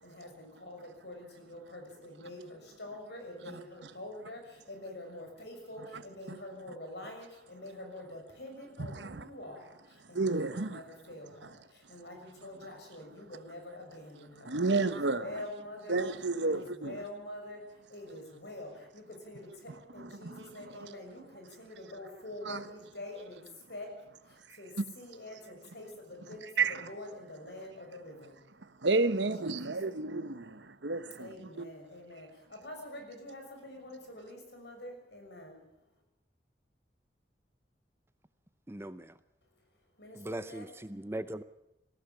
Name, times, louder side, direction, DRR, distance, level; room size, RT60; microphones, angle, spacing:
voice 1, 0.0-4.4 4.7-9.8 10.1-11.5 11.9-16.0 16.4-17.6 17.9-19.5 19.9-23.4 23.7-23.9 24.6-28.4 29.2-30.0 31.2-35.6 40.0-40.7, left 1 dB, 75° left, 6.4 m, -46 dB
voice 2, 3.5-3.9 5.9-6.0 6.3-6.4 8.8-9.3 10.1-10.8 14.4-15.4 15.9-17.0 20.0-20.9 22.4-22.6 24.8-24.9 26.6-26.9 28.8-31.7, right 3 dB, 90° right, 1.2 m, -32 dB
voice 3, 38.7-39.1 40.2-41.4, right 1 dB, 15° right, 0.6 m, -39 dB
19.0 x 15.0 x 9.1 m
head